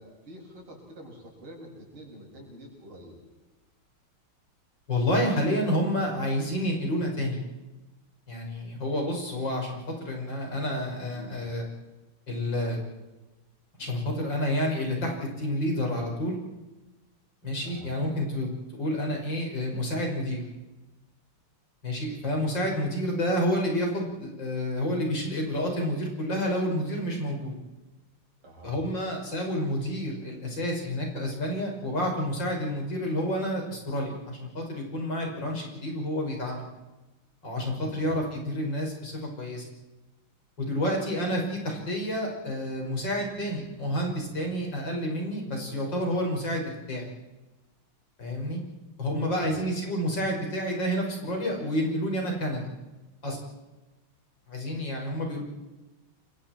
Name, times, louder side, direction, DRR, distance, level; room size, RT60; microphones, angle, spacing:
voice 1, 0.0-3.2 11.1-11.4 17.6-17.9 28.4-29.0 37.8-38.2 49.2-49.5, equal, 75° right, -1 dB, 7.7 m, -47 dB
voice 2, 4.9-7.4 8.3-9.8 10.0-11.6 12.3-12.8 13.8-16.4 17.4-20.4 21.8-27.5 28.6-36.6 37.4-39.6 40.6-47.1 48.2-48.6 49.0-52.6 53.2-53.4 54.5-55.4, equal, 55° left, 0 dB, 6.4 m, -29 dB
29.0 x 25.0 x 4.5 m, 1.1 s
omnidirectional pair, 2.4 m